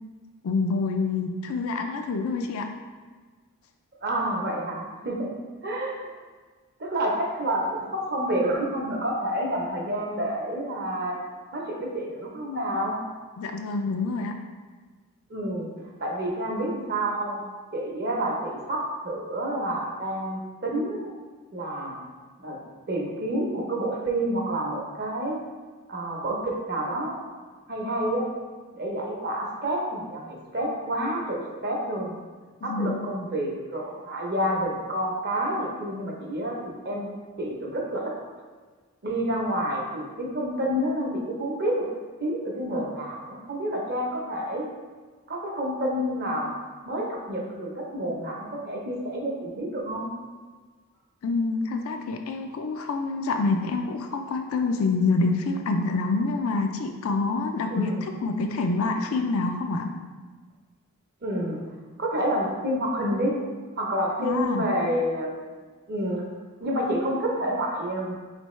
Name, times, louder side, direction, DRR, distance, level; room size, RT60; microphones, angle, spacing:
voice 1, 0.4-2.7 13.4-14.3 32.7-33.0 51.2-59.9 64.2-64.7, left 3 dB, 70° left, 5 dB, 0.4 m, -27 dB
voice 2, 4.0-5.3 5.6-6.1 6.8-11.2 11.5-13.0 15.3-15.7 16.0-17.4 17.7-21.1 21.5-22.0 22.4-22.6 22.9-25.4 25.9-27.1 27.7-28.3 28.7-32.2 32.6-36.6 36.8-37.1 37.4-38.1 39.0-41.8 42.2-44.7 45.3-46.6 46.9-50.1 57.7-58.0 61.2-61.6 62.0-63.3 63.8-65.5 65.9-66.2 66.6-68.1, right 1 dB, 45° right, -1 dB, 0.7 m, -29 dB
4.4 x 3.3 x 3.1 m, 1.4 s
head